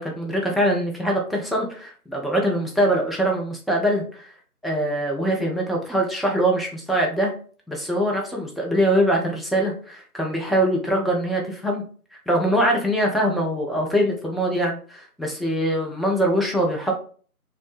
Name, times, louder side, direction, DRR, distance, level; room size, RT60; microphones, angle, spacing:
voice 1, 0.0-4.3 4.6-7.3 7.7-11.8 12.1-16.9, right 1 dB, ahead, -1 dB, 0.4 m, -23 dB
2.7 x 2.1 x 3.1 m, 0.43 s
figure-of-eight pair, 170°, 46 cm